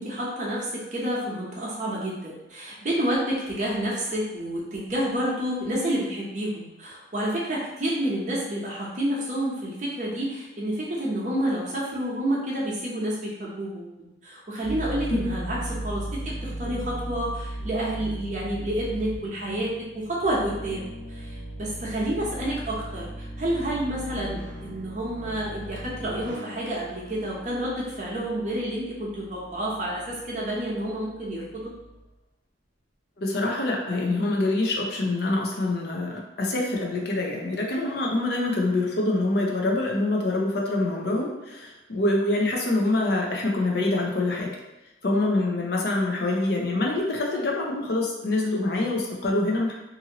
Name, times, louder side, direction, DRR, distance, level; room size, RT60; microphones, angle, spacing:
voice 1, 0.0-13.9 14.2-15.6 15.8-31.7, right 1 dB, 40° right, -5 dB, 0.8 m, -29 dB
sound 1, 14.6-32.0, right 1 dB, 85° right, 0.7 m, -38 dB
voice 2, 33.2-44.6 45.0-49.7, left 2 dB, 55° left, -1 dB, 0.5 m, -25 dB
2.7 x 2.5 x 2.8 m, 0.98 s
head